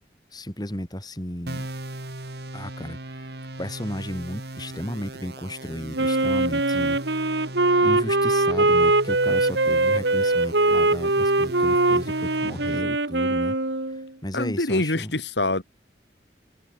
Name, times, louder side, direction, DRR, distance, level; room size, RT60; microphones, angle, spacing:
voice 1, 0.3-1.7 2.5-7.0 7.8-13.6 13.9-15.2, equal, 20° left, 6.9 m, -34 dB
sound 1, 1.5-12.8, right 1 dB, 65° right, 2.8 m, -38 dB
Wind instrument woodwind instrument, 6.0-14.1, right 2 dB, 80° right, 3.0 m, -22 dB
voice 2, 14.3-15.6, left 2 dB, 75° left, 3.4 m, -25 dB
open air
head